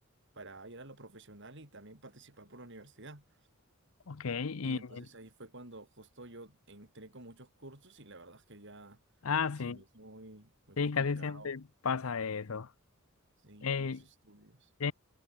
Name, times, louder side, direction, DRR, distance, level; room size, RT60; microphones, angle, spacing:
voice 1, 0.3-3.3 4.6-9.0 9.6-11.5 13.4-14.7, right 2 dB, 60° right, 6.3 m, -51 dB
voice 2, 4.1-5.0 9.2-9.8 10.8-12.7 13.6-14.0 14.8-14.9, left 5 dB, 80° left, 0.7 m, -33 dB
head